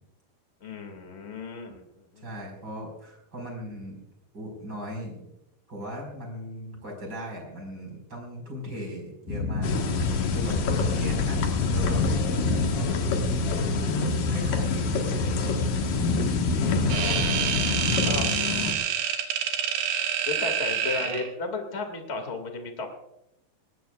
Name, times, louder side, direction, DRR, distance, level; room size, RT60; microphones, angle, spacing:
voice 1, 0.6-2.4 10.1-10.9 16.6-17.6 18.0-18.3 20.3-22.9, left 4 dB, 30° left, 5 dB, 1.1 m, -35 dB
voice 2, 2.2-4.0 4.3-5.3 5.7-9.7 10.0-12.0 12.5-12.9 13.8-15.6 17.8-18.3, right 1 dB, 25° right, 1 dB, 5.3 m, -38 dB
sound 1, 9.3-18.3, left 3 dB, 80° left, 4.0 m, -28 dB
sound 2, 9.6-18.7, left 4 dB, 60° left, 2.7 m, -28 dB
sound 3, 16.9-21.3, right 9 dB, 85° right, 3.3 m, -27 dB
19.5 x 19.5 x 2.4 m, 0.84 s
omnidirectional pair, 4.9 m